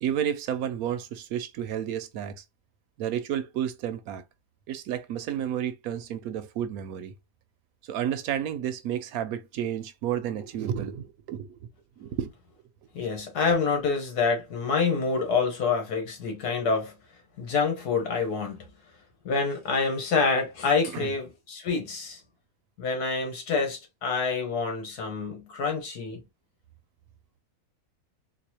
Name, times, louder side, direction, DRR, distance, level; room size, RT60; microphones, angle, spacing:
voice 1, 0.0-2.4 3.0-4.2 4.7-7.1 7.8-11.6 12.0-12.3 20.9-21.1, right 9 dB, 75° right, 1.0 m, -31 dB
voice 2, 13.0-16.9 17.4-18.6 19.3-22.2 22.8-26.2, left 4 dB, 80° left, 1.8 m, -27 dB
4.0 x 2.5 x 2.8 m
omnidirectional pair, 1.6 m